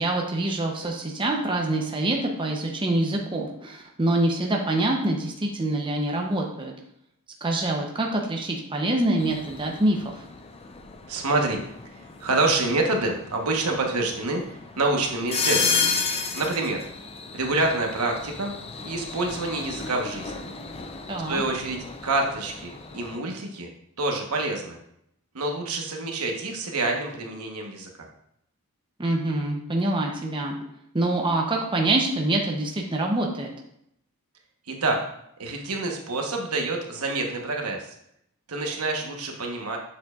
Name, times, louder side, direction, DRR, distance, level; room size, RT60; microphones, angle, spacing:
voice 1, 0.0-6.7 7.4-10.2 21.1-21.4 29.0-30.6 30.9-33.5, right 2 dB, 20° right, 0 dB, 0.7 m, -25 dB
sound 1, 9.2-23.2, left 5 dB, 25° left, 0.5 m, -33 dB
voice 2, 11.1-11.6 12.2-16.0 16.3-16.8 17.3-18.5 18.8-20.5 21.2-23.7 24.0-24.8 25.3-27.9 34.7-35.0 35.4-37.9 38.5-39.8, right 2 dB, 75° right, 2 dB, 1.1 m, -27 dB
7.4 x 6.6 x 2.4 m, 0.75 s
head